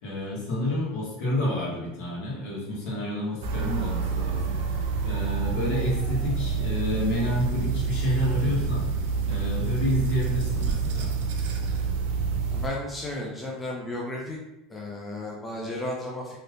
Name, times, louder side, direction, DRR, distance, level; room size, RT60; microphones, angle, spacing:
voice 1, 0.0-8.9 9.3-11.1, left 1 dB, 60° left, -6 dB, 1.3 m, -29 dB
sound 1, 3.4-12.7, right 5 dB, 70° right, 0.4 m, -28 dB
voice 2, 12.5-14.4 14.7-16.4, left 1 dB, 10° left, -3 dB, 0.3 m, -34 dB
3.3 x 2.7 x 2.5 m, 0.97 s
supercardioid pair, 175°, 0 cm